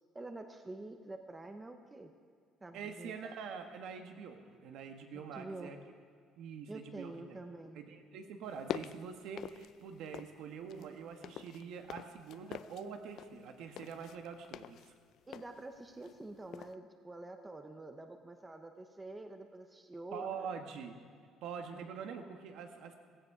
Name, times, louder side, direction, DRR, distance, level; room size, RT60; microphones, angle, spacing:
voice 1, 0.1-2.1 2.6-3.2 5.1-5.7 6.7-7.8 15.3-20.5 21.7-21.9, right 2 dB, 10° right, 6 dB, 0.7 m, -47 dB
voice 2, 2.7-5.8 6.4-7.4 7.7-14.9 20.1-21.0 21.4-22.9, right 6 dB, 65° right, 5 dB, 1.5 m, -45 dB
sound 1, 8.4-10.4 10.7-16.3 16.5-16.7, left 11 dB, 50° left, 0.4 m, -46 dB
16.5 x 16.0 x 4.9 m, 2.1 s
cardioid pair, 180°, 0 cm